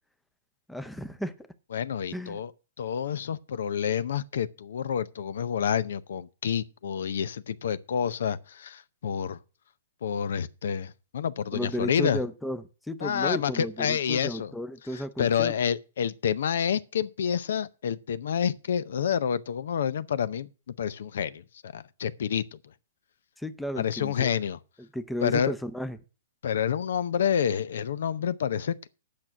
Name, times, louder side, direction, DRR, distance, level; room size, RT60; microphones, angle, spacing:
voice 1, 0.7-1.5 2.1-2.4 11.5-15.5 23.4-24.3 24.8-26.0, equal, 5° left, 0.6 m, -34 dB
voice 2, 1.7-2.5 2.8-9.4 10.0-12.2 13.0-14.5 15.2-22.6 23.8-24.6 25.2-25.5 26.4-28.9, left 8 dB, 70° left, 0.6 m, -28 dB
8.6 x 6.1 x 7.9 m
hypercardioid pair, 155°, 0 cm